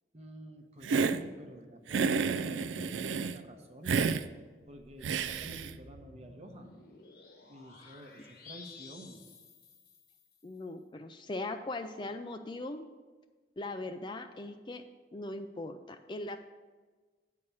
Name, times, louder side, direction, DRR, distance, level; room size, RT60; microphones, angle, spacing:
voice 1, 0.1-4.1 4.7-6.7 7.4-9.3, equal, 35° right, 4 dB, 0.9 m, -49 dB
Hiss, 0.8-1.2 1.9-3.4 3.9-4.2 5.0-5.7, right 5 dB, 85° right, 0.4 m, -30 dB
sound 1, 4.7-10.4, left 4 dB, 55° left, 1.1 m, -54 dB
voice 2, 10.4-12.9 13.6-14.8 15.1-16.4, left 2 dB, 25° left, 7 dB, 0.3 m, -40 dB
8.6 x 4.8 x 6.9 m, 1.4 s
head